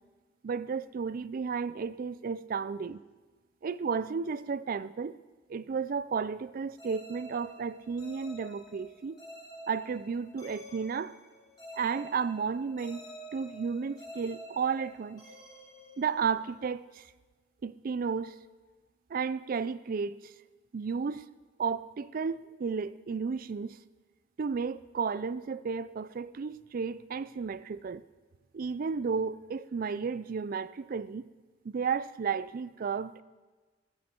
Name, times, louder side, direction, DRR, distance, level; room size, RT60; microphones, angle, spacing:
voice 1, 0.4-3.0 3.6-5.2 5.5-9.2 9.7-11.1 11.7-13.0 13.3-15.2 16.0-17.0 17.6-18.4 19.1-20.3 20.7-21.3 21.6-23.8 24.4-28.0 28.5-31.3 31.6-33.2, right 5 dB, 50° right, 0.4 m, -33 dB
sound 1, 6.8-16.6, equal, 20° left, 3.6 m, -49 dB
16.0 x 13.0 x 4.4 m
head